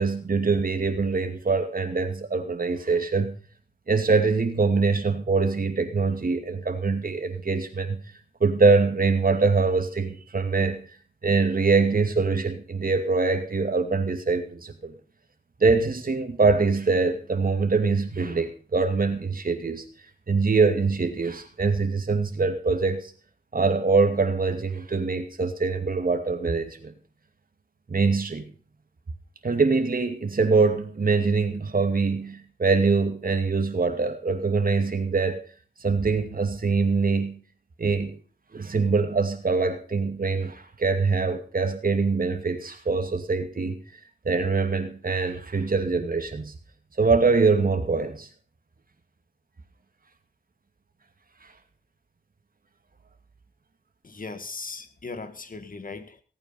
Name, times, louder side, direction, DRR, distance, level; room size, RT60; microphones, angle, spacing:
voice 1, 0.0-3.4 3.9-8.0 8.4-10.9 11.2-14.9 15.6-19.8 20.3-23.1 23.5-26.9 27.9-28.5 29.4-35.4 35.8-37.4 37.8-38.2 38.5-43.8 44.2-46.5 47.0-48.3, right 4 dB, 55° right, 2.5 m, -23 dB
voice 2, 54.0-56.2, left 3 dB, 50° left, 1.9 m, -38 dB
18.0 x 8.9 x 5.6 m
cardioid pair, 65°, 18 cm